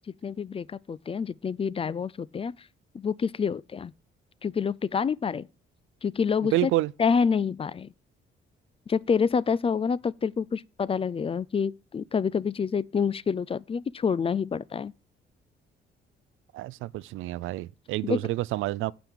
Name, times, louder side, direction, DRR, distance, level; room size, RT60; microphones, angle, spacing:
voice 1, 0.2-2.5 2.9-3.9 4.4-5.5 6.0-6.7 7.0-7.9 8.9-14.9 18.0-18.3, left 6 dB, 30° left, 0.4 m, -27 dB
voice 2, 6.5-6.9 16.5-18.9, right 17 dB, 85° right, 0.4 m, -28 dB
9.2 x 5.2 x 6.3 m
cardioid pair, 90°, 20 cm